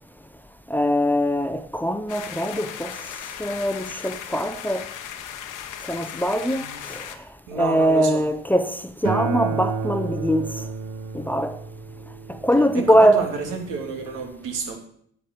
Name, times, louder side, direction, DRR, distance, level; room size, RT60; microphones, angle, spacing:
voice 1, 0.7-2.9 3.4-4.8 5.9-7.0 7.5-10.5 11.1-11.6 12.3-13.2, equal, 5° left, 0.7 m, -22 dB
sound 1, 2.1-7.2, left 9 dB, 85° left, 1.2 m, -37 dB
voice 2, 6.5-6.8 7.5-8.2 12.7-14.8, right 4 dB, 85° right, 3.0 m, -30 dB
Acoustic guitar, 9.0-14.2, right 5 dB, 70° right, 1.0 m, -31 dB
9.8 x 7.6 x 6.8 m
cardioid pair, 90°, 30 cm